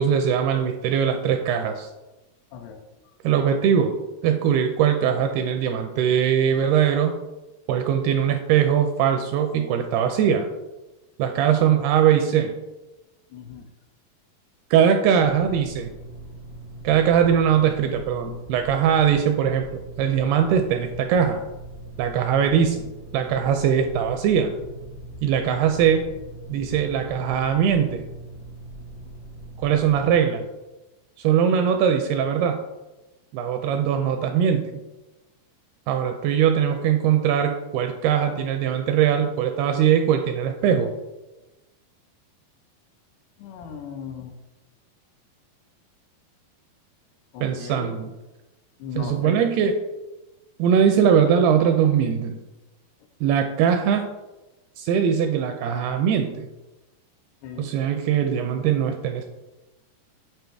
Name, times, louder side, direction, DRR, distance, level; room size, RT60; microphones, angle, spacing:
voice 1, 0.0-1.9 3.2-3.9 4.2-7.2 7.7-10.5 11.2-12.5 14.7-15.9 16.8-21.4 22.0-24.5 25.2-26.0 26.5-28.1 29.6-30.4 31.2-32.6 33.3-34.8 35.9-40.9 47.4-48.1 49.0-49.8 50.6-52.4 53.2-54.0 54.8-56.5 57.6-59.2, right 8 dB, 85° right, 6 dB, 2.3 m, -21 dB
voice 2, 11.5-11.8 13.3-13.7 43.4-44.3 47.3-48.0 48.8-49.5 57.4-57.7, left 6 dB, 85° left, 6 dB, 2.8 m, -37 dB
sound 1, 15.2-30.2, right 2 dB, 60° left, 1.2 m, -41 dB
9.1 x 5.5 x 3.4 m, 1.1 s
omnidirectional pair, 5.0 m